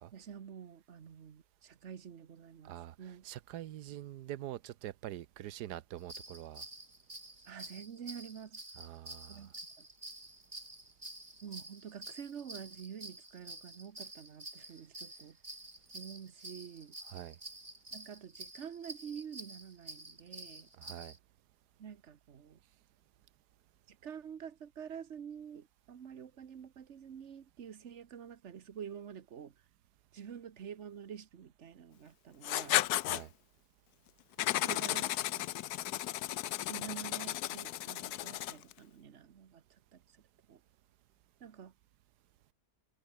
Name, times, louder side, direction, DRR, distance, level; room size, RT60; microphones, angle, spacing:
voice 1, 0.1-3.2 7.4-8.6 9.3-9.9 11.4-15.4 15.9-17.0 17.9-20.7 21.8-22.6 23.9-29.6 30.1-32.8 34.6-35.5 36.7-40.2 40.5-40.6 41.4-41.7, right 8 dB, 50° right, 1.4 m, -48 dB
voice 2, 2.6-6.6 8.8-9.5 17.1-17.4 20.8-21.1 33.0-33.3, right 13 dB, 85° right, 1.3 m, -45 dB
sound 1, 6.0-21.2, right 1 dB, 25° right, 3.9 m, -49 dB
Writing, 32.4-33.2 34.4-38.7, left 14 dB, 80° left, 1.2 m, -34 dB
omnidirectional pair, 1.7 m